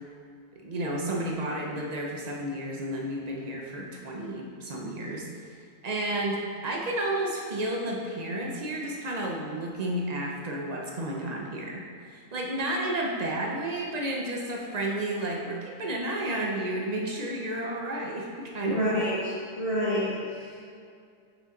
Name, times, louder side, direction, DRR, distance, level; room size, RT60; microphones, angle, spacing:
voice 1, 0.6-5.2 5.8-18.8, right 1 dB, 40° right, -1 dB, 0.6 m, -31 dB
voice 2, 18.6-20.6, equal, 25° left, -12 dB, 1.4 m, -28 dB
5.8 x 5.6 x 3.9 m, 2.3 s
omnidirectional pair, 1.6 m